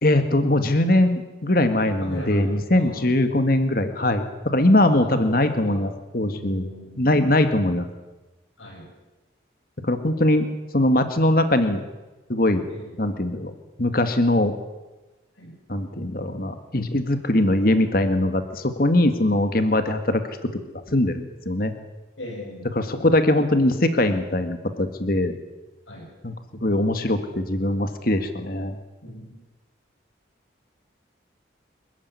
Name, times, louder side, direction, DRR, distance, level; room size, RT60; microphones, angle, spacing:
voice 1, 0.0-6.7 7.0-7.9 9.8-10.5 10.7-11.8 12.3-12.6 13.0-13.5 13.8-14.5 15.7-20.2 20.9-21.7 22.7-25.3 26.2-26.3 26.6-28.8, left 1 dB, 50° left, 8 dB, 2.0 m, -21 dB
voice 2, 2.0-3.1 4.8-5.8 6.3-7.1 8.6-8.9 12.7-12.9 15.4-15.6 22.2-22.7 25.9-26.1 29.0-29.4, equal, 80° left, -3 dB, 6.3 m, -38 dB
25.5 x 14.5 x 9.9 m, 1.1 s
head